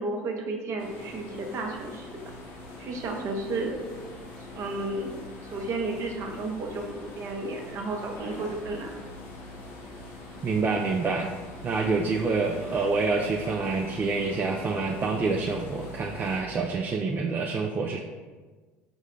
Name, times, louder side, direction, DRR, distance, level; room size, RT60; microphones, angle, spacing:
voice 1, 0.0-2.2 2.8-3.8 4.5-9.0, right 2 dB, 50° right, 2 dB, 0.8 m, -33 dB
sound 1, 0.8-16.4, left 2 dB, 70° left, 1.0 m, -43 dB
voice 2, 10.4-11.3 11.6-18.0, right 4 dB, 30° right, 1 dB, 0.4 m, -27 dB
4.9 x 2.1 x 3.7 m, 1.4 s
hypercardioid pair, 80°, 6 cm